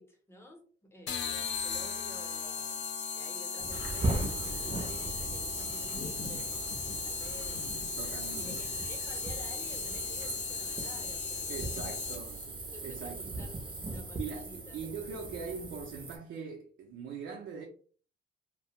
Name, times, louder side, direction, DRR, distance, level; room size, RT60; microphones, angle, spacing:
voice 1, 0.0-2.8 3.1-7.9 8.4-11.9 12.7-14.8, left 1 dB, 10° left, 0.8 m, -52 dB
sound 1, 1.1-12.5, left 6 dB, 65° left, 0.5 m, -37 dB
sound 2, 3.6-16.2, right 2 dB, 25° right, 0.6 m, -38 dB
Bird vocalization bird call bird song, 3.7-11.0, left 3 dB, 90° left, 0.9 m, -49 dB
voice 2, 8.0-8.6 11.5-12.4 12.8-13.4 14.2-17.7, right 5 dB, 70° right, 0.5 m, -42 dB
2.3 x 2.1 x 2.8 m
cardioid pair, 90°, 20 cm